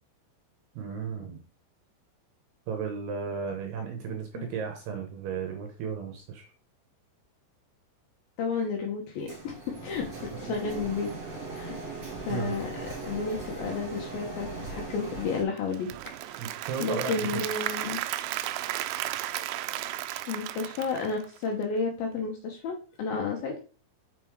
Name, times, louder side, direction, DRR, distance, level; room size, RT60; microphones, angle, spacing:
voice 1, 0.7-1.4 2.7-6.5 10.4-10.5 12.1-12.5 16.4-17.4, right 6 dB, 70° right, 4 dB, 2.5 m, -34 dB
voice 2, 8.4-10.1 10.4-11.1 11.5-11.7 12.3-12.7 13.0-15.9 16.3-16.4 16.8-18.0 20.3-23.6, left 4 dB, 80° left, 1 dB, 2.1 m, -32 dB
Printer, 9.3-15.4, right 3 dB, 35° right, 3.4 m, -39 dB
Applause / Crowd, 15.6-21.6, right 14 dB, 90° right, 2.5 m, -34 dB
6.6 x 5.6 x 4.7 m, 0.37 s
omnidirectional pair, 5.8 m